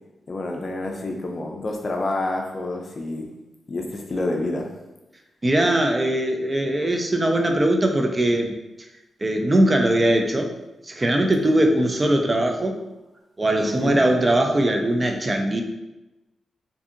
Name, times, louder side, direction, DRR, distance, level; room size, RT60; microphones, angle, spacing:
voice 1, 0.3-3.3 3.7-4.7 10.1-10.2 13.6-14.0, left 2 dB, 45° left, 2 dB, 0.4 m, -28 dB
voice 2, 5.4-8.5 9.2-10.5 10.8-12.8 13.4-15.6, right 1 dB, 25° right, 3 dB, 0.3 m, -20 dB
2.5 x 2.5 x 2.5 m, 1.0 s
cardioid pair, 85°, 0 cm